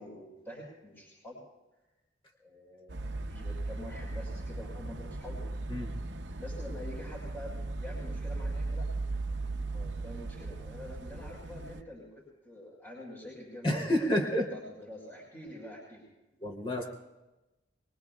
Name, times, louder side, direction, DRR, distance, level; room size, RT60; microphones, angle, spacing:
voice 1, 0.0-1.4 2.4-5.4 6.4-8.9 9.7-12.1 12.4-13.7 14.4-14.6 14.9-16.1, left 1 dB, 10° left, -6 dB, 6.3 m, -46 dB
sound 1, 2.9-11.8, right 2 dB, 70° right, 0.8 m, -37 dB
voice 2, 13.6-14.5 16.4-16.8, equal, 30° left, -1 dB, 3.1 m, -29 dB
25.5 x 23.0 x 2.4 m, 1.0 s
head